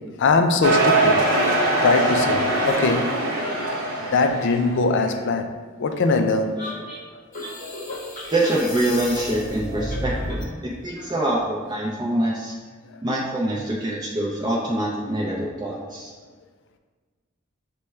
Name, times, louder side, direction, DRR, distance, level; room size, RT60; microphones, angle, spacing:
voice 1, 0.2-1.3 1.8-3.1 4.1-5.5 5.8-6.6 12.9-13.0, left 3 dB, 60° left, 6 dB, 0.4 m, -21 dB
sound 1, 0.6-4.7, right 2 dB, 45° right, 0.9 m, -22 dB
sound 2, 6.6-10.5, left 1 dB, 40° left, 0.8 m, -32 dB
voice 2, 8.3-12.5 13.0-16.1, right 1 dB, 20° right, -4 dB, 0.4 m, -25 dB
6.6 x 2.2 x 3.1 m, 1.4 s
head